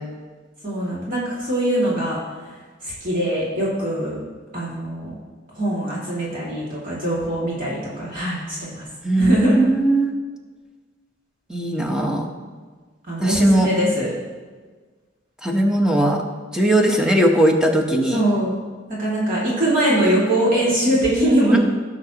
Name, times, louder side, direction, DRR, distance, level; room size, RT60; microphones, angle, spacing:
voice 1, 0.6-2.2 2.8-4.2 4.5-5.1 5.5-8.9 9.2-9.6 13.1-14.1 18.1-18.6 19.0-21.6, right 1 dB, 45° right, -7 dB, 2.3 m, -22 dB
voice 2, 9.0-10.1 11.5-12.3 13.2-13.7 15.4-16.2 16.5-18.2 21.5-21.6, right 1 dB, 5° right, 2 dB, 0.9 m, -18 dB
17.0 x 6.1 x 2.9 m, 1.4 s
head